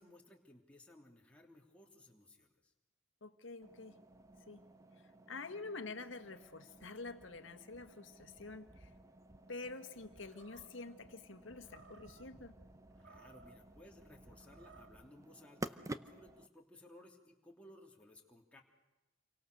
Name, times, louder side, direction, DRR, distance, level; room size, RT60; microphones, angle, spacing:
voice 1, 0.0-2.7 13.0-18.6, left 1 dB, 5° left, -1 dB, 3.2 m, -60 dB
voice 2, 3.2-4.0 4.5-4.6 5.3-8.9 9.5-12.5, left 3 dB, 75° left, 9 dB, 1.7 m, -47 dB
sound 1, 3.6-16.5, right 1 dB, 15° right, 0.8 m, -52 dB
Animal, 10.2-11.0 11.6-12.3 12.9-13.6 14.3-15.0, right 4 dB, 70° right, 1.7 m, -61 dB
28.5 x 24.0 x 6.8 m, 1.0 s
head